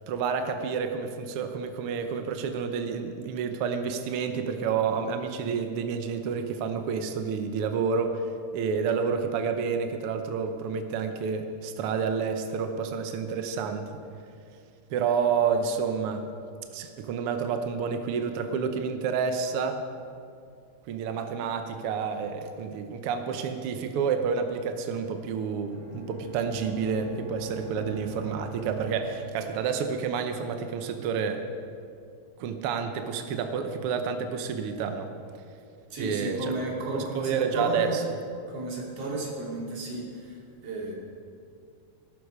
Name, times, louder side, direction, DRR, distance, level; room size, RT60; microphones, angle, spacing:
voice 1, 0.1-8.2 8.5-14.0 14.9-16.3 16.7-19.9 20.9-31.5 32.4-35.1 36.0-36.6 36.9-38.0, right 6 dB, 75° right, 6 dB, 1.3 m, -29 dB
Bowed string instrument, 25.6-30.1, right 2 dB, 55° left, 1.0 m, -44 dB
voice 2, 35.9-38.0 38.5-40.9, right 2 dB, 50° right, -2 dB, 3.5 m, -33 dB
19.0 x 12.0 x 4.9 m, 2.4 s
omnidirectional pair, 3.7 m